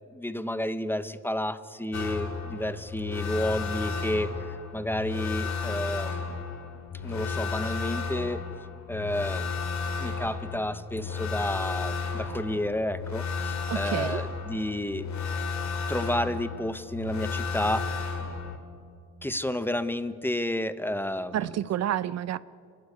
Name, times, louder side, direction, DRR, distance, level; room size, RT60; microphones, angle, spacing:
voice 1, 0.1-6.3 7.0-8.4 8.9-9.5 10.0-15.1 15.9-18.1 19.2-21.4, left 1 dB, 5° left, 0.9 m, -31 dB
sound 1, 1.9-18.6, left 5 dB, 65° left, 2.5 m, -33 dB
voice 2, 13.7-14.2 21.3-22.4, right 11 dB, 60° right, 0.6 m, -29 dB
26.0 x 12.0 x 9.5 m
cardioid pair, 90°, 30 cm